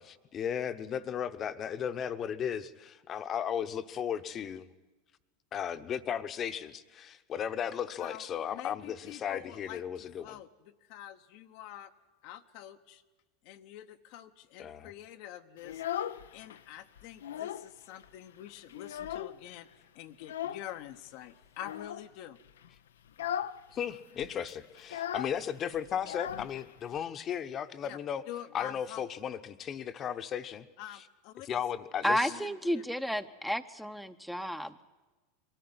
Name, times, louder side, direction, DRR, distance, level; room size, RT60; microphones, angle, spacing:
voice 1, 0.0-4.7 5.5-10.4 14.6-14.9 23.7-28.2 28.5-30.7 30.9-31.0 31.4-32.3, left 8 dB, 35° left, 11 dB, 1.0 m, -35 dB
voice 2, 8.5-11.9 12.2-13.0 13.4-19.7 19.9-22.4 27.8-28.0 28.3-29.1 30.8-31.6 32.1-32.8, left 12 dB, 60° left, 7 dB, 0.9 m, -47 dB
Child speech kid speaking, 15.6-16.6 17.0-17.7 18.0-18.1 18.5-19.6 20.2-20.7 21.6-22.1 22.5-22.7 23.1-23.6 23.9-24.0 24.2-27.0, left 10 dB, 80° left, 0.6 m, -38 dB
voice 3, 32.0-34.9, equal, ahead, 9 dB, 0.9 m, -32 dB
22.5 x 13.5 x 9.6 m, 1.2 s
hypercardioid pair, 95°, 0 cm